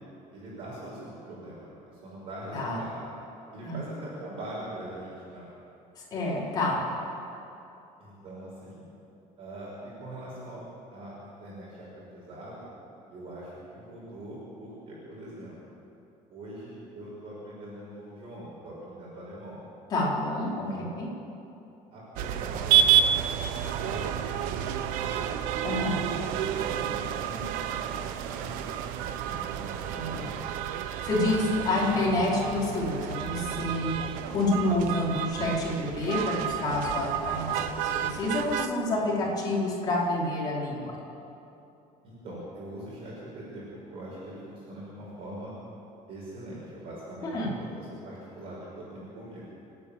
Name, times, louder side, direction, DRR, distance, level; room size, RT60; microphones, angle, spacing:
voice 1, 0.3-3.0 3.5-5.5 6.3-6.8 8.0-8.9 9.4-9.7 10.0-10.6 10.9-12.7 13.1-15.6 16.3-19.6 20.6-20.9 21.9-24.2 24.5-25.3 26.2-30.3 31.0-31.8 42.0-45.5 46.1-49.5, right 1 dB, 45° right, -6 dB, 6.1 m, -42 dB
voice 2, 6.0-6.8 19.9-20.7 21.0-21.1 25.6-26.0 29.9-30.2 30.8-33.9 34.3-40.9 47.3-47.5, left 2 dB, 30° left, -5 dB, 4.8 m, -28 dB
sound 1, 22.2-38.7, right 10 dB, 85° right, 1.1 m, -30 dB
29.0 x 9.9 x 9.1 m, 2.9 s
cardioid pair, 180°, 14 cm